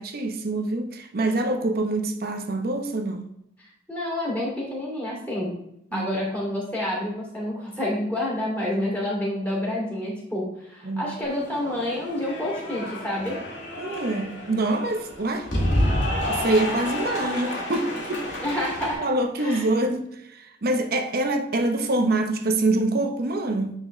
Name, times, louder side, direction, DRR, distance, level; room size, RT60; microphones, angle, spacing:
voice 1, 0.0-3.3 5.9-6.1 10.8-11.0 13.8-15.5 16.3-18.4 19.0-23.7, right 2 dB, 55° right, 0.8 m, -25 dB
voice 2, 3.9-5.5 5.9-13.4 18.4-19.1 19.4-19.6, left 1 dB, 10° left, 2.6 m, -28 dB
Cheering / Applause, 11.2-18.9, left 1 dB, 75° left, 2.0 m, -29 dB
9.6 x 3.9 x 3.2 m
head